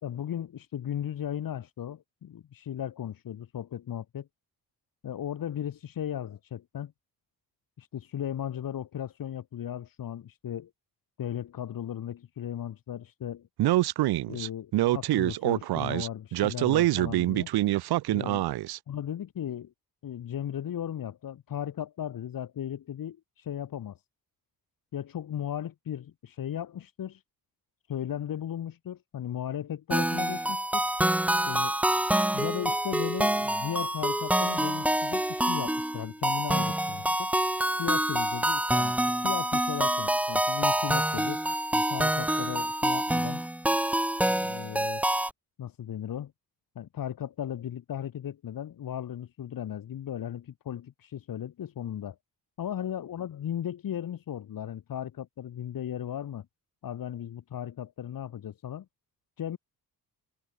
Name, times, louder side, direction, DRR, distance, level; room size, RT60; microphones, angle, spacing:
voice 1, 0.0-4.3 5.0-6.9 7.8-10.7 11.2-13.5 14.3-17.5 18.1-18.4 18.9-19.7 20.0-24.0 24.9-27.2 27.9-30.9 31.5-31.7 32.3-37.3 37.8-41.4 41.7-43.4 44.2-45.0 45.6-46.3 46.8-52.2 52.6-56.5 56.8-58.9 59.4-59.6, left 10 dB, 60° left, 4.1 m, -36 dB
Speech, 13.6-18.8, right 16 dB, 85° right, 0.9 m, -25 dB
sound 1, 29.9-45.3, right 1 dB, 5° right, 0.9 m, -27 dB
open air
cardioid pair, 130°, 38 cm